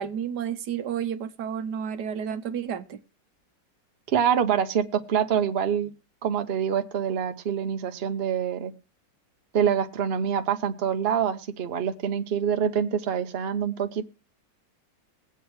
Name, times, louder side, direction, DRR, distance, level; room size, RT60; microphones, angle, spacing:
voice 1, 0.0-3.0, right 8 dB, 70° right, 1.3 m, -31 dB
voice 2, 4.1-5.9 6.2-8.7 9.5-14.0, right 8 dB, 50° right, 0.7 m, -25 dB
21.5 x 8.1 x 3.1 m
omnidirectional pair, 2.0 m